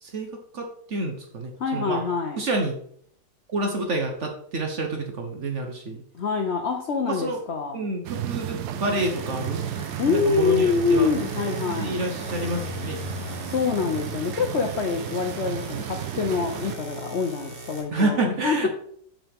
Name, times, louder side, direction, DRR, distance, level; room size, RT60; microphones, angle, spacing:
voice 1, 0.0-2.0 2.4-2.8 3.5-6.0 7.1-7.4 7.7-9.6 9.9-11.1 11.6-13.0 15.8-15.9 17.9-18.7, right 2 dB, 50° right, 3 dB, 1.0 m, -28 dB
voice 2, 1.6-2.4 6.1-7.9 10.0-12.0 13.5-18.7, left 5 dB, 60° left, 3 dB, 0.7 m, -25 dB
sound 1, 8.0-16.7, right 11 dB, 70° right, 1.0 m, -34 dB
sound 2, 8.6-17.8, equal, 30° right, 1.7 m, -38 dB
7.0 x 5.9 x 3.5 m, 0.62 s
omnidirectional pair, 1.9 m